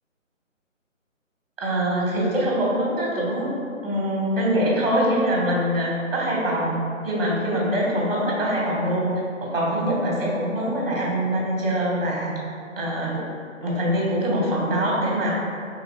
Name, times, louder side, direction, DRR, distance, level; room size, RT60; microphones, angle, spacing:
voice 1, 1.6-3.5 3.8-6.8 7.0-9.1 9.4-12.3 12.8-13.2 13.6-15.3, equal, 45° right, -4 dB, 1.0 m, -23 dB
3.4 x 3.0 x 3.0 m, 2.3 s
hypercardioid pair, 175°, 40 cm